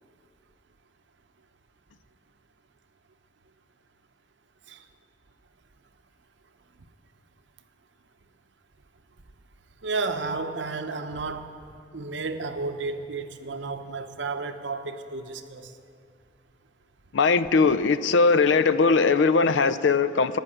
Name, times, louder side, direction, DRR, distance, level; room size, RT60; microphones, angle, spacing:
voice 1, 9.8-11.5 11.9-15.7, right 3 dB, 70° right, 9 dB, 0.8 m, -32 dB
voice 2, 17.1-20.4, left 4 dB, 70° left, 14 dB, 0.5 m, -20 dB
14.0 x 5.9 x 9.9 m, 2.4 s
head